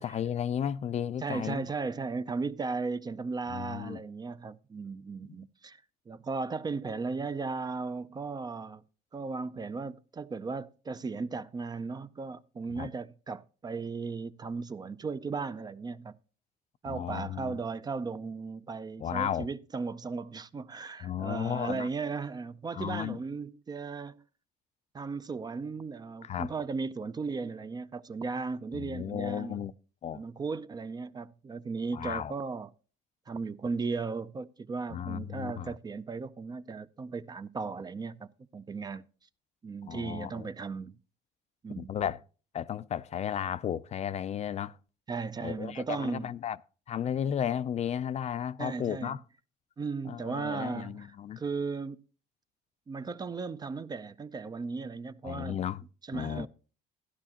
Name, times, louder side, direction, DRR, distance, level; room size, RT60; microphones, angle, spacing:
voice 1, 0.0-1.7 3.5-4.0 5.2-5.4 12.8-12.9 16.9-17.6 19.0-19.5 21.0-21.9 22.7-23.2 26.2-26.5 28.7-29.7 30.0-30.2 31.9-32.3 34.9-35.7 39.9-40.5 41.8-42.2 42.5-44.8 45.4-46.6 46.9-49.2 50.1-51.4 55.2-55.8 56.1-56.5, left 9 dB, 40° left, 0.4 m, -34 dB
voice 2, 1.2-8.8 9.1-16.2 16.8-24.2 24.9-29.6 30.1-32.7 33.3-39.1 39.6-41.0 41.6-41.9 45.1-46.3 48.6-49.2 49.8-51.1 51.4-52.0 52.9-55.6 56.1-56.5, right 4 dB, 25° right, 0.4 m, -36 dB
13.0 x 10.5 x 2.8 m
cardioid pair, 110°, 17 cm